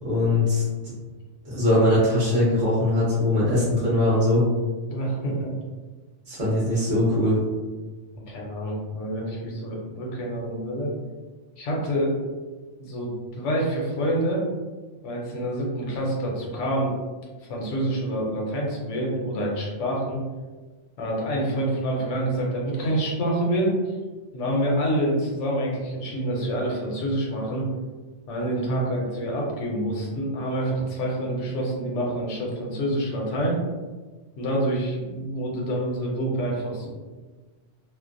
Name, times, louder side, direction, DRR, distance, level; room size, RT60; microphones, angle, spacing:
voice 1, 0.0-0.6 1.4-4.4 6.3-7.4, left 1 dB, 40° right, -8 dB, 0.8 m, -21 dB
voice 2, 4.9-5.5 8.3-10.9 11.6-12.2 12.8-14.4 15.0-16.9 17.5-20.2 21.0-23.8 24.3-27.7 28.3-33.6 34.4-36.9, right 1 dB, 80° left, -2 dB, 1.0 m, -27 dB
2.5 x 2.0 x 2.5 m, 1.3 s
omnidirectional pair, 1.2 m